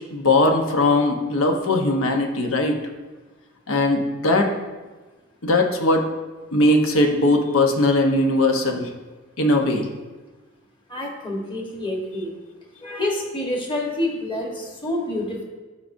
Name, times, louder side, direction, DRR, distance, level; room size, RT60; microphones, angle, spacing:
voice 1, 0.1-2.8 3.7-4.5 5.4-6.0 6.5-8.9 9.4-9.9, left 2 dB, 80° left, 4 dB, 1.0 m, -19 dB
voice 2, 10.9-12.3 12.8-15.4, left 1 dB, 25° left, 0 dB, 1.3 m, -27 dB
13.0 x 5.0 x 2.7 m, 1.2 s
head